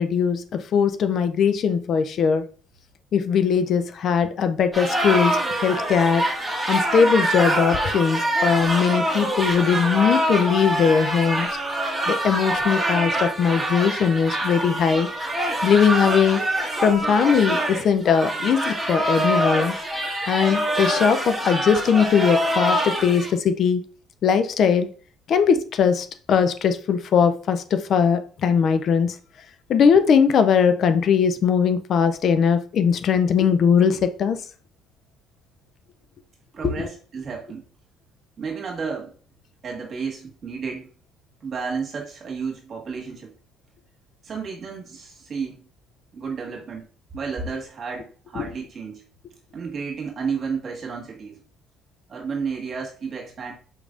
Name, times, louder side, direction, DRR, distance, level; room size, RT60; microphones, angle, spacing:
voice 1, 0.0-2.4 3.1-6.2 6.7-11.5 12.1-15.1 15.6-16.4 16.8-19.7 20.3-23.8 24.2-24.9 25.3-29.1 29.7-34.4 36.6-36.9 48.4-48.5, left 6 dB, 55° left, 0.4 m, -20 dB
sound 1, 4.7-23.3, right 1 dB, 10° right, 1.5 m, -25 dB
voice 2, 36.5-37.6 38.4-39.1 39.6-40.9 41.4-43.3 44.2-45.6 46.1-46.8 47.1-49.0 49.5-51.4 52.1-53.5, right 5 dB, 45° right, 1.6 m, -32 dB
4.7 x 3.2 x 2.5 m
supercardioid pair, 70°, 0 cm